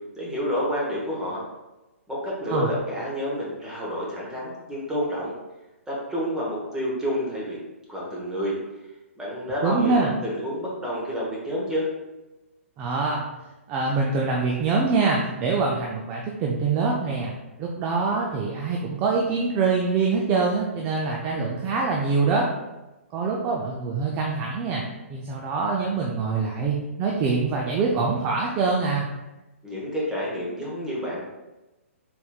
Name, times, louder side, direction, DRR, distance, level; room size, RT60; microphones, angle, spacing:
voice 1, 0.1-1.4 2.1-5.3 5.9-7.6 7.9-8.6 9.2-11.9 29.6-31.3, equal, 10° right, -6 dB, 1.0 m, -29 dB
voice 2, 9.6-10.1 12.8-13.2 13.7-17.3 17.6-22.5 23.1-24.8 25.1-29.1, right 4 dB, 25° right, -1 dB, 0.4 m, -24 dB
4.3 x 3.5 x 2.3 m, 1.0 s
hypercardioid pair, 135°, 7 cm